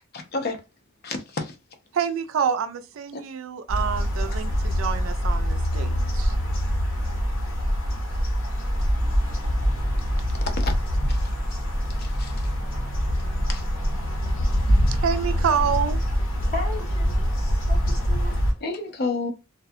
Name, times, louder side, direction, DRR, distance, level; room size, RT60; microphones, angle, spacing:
voice 1, 0.1-0.6 1.0-1.6 3.1-3.2 10.4-10.8 11.1-11.3 12.0-12.5 13.5-13.7 18.6-19.3, left 3 dB, 50° left, 0.6 m, -30 dB
voice 2, 1.9-6.4 14.9-16.0, right 7 dB, 70° right, 0.3 m, -27 dB
sound 1, 3.7-18.5, equal, 75° left, 0.9 m, -24 dB
voice 3, 16.5-18.6, left 2 dB, 35° left, 1.3 m, -36 dB
2.3 x 2.1 x 2.7 m
head